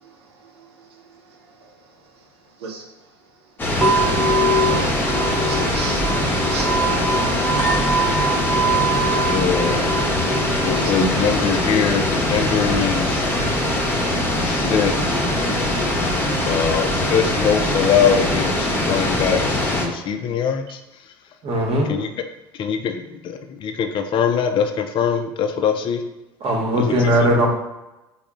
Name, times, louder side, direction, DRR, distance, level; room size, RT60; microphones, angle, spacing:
sound 1, 3.6-19.9, left 1 dB, 15° left, 0.7 m, -22 dB
sound 2, 3.8-17.8, right 2 dB, ahead, 1.1 m, -25 dB
voice 1, 4.6-6.0 6.5-6.9 7.7-7.8 10.8-11.1, right 4 dB, 80° right, 2 dB, 0.6 m, -32 dB
voice 2, 9.1-9.8 10.6-13.3 14.4-15.2 16.5-20.8 21.9-22.1 22.5-26.0 26.8-27.1, left 7 dB, 40° left, 6 dB, 0.4 m, -22 dB
voice 3, 21.4-21.9 26.4-27.5, equal, 50° right, 1 dB, 1.0 m, -18 dB
3.6 x 2.0 x 3.5 m, 1.0 s
hypercardioid pair, 75°, 13 cm